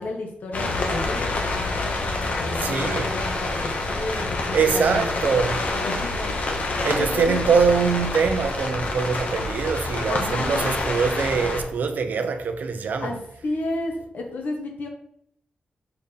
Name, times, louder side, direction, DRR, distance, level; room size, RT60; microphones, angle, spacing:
voice 1, 0.0-7.4 10.1-10.8 13.0-13.1 13.4-14.9, left 2 dB, 75° left, 1.6 m, -33 dB
sound 1, 0.5-11.6, left 2 dB, 55° left, 1.2 m, -27 dB
voice 2, 2.6-3.2 4.5-5.6 6.8-13.2, right 5 dB, 70° right, 0.7 m, -23 dB
6.7 x 4.5 x 3.4 m
wide cardioid pair, 140°, 3 cm